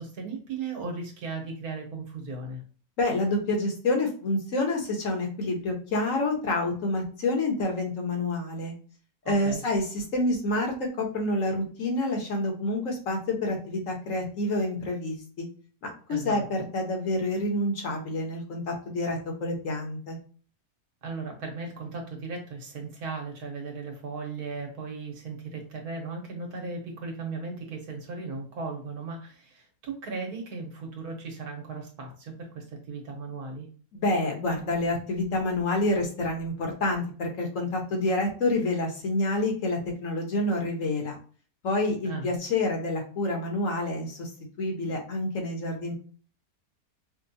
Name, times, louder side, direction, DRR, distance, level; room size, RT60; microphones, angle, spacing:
voice 1, 0.0-2.6 9.2-9.6 16.1-16.4 21.0-33.7 42.0-42.4, right 4 dB, 90° right, 2 dB, 1.6 m, -37 dB
voice 2, 3.0-8.7 9.2-15.5 15.8-20.2 33.9-41.2 41.6-44.3 44.6-45.9, left 2 dB, 60° left, 2 dB, 1.4 m, -28 dB
5.3 x 2.3 x 2.7 m, 0.41 s
omnidirectional pair, 1.6 m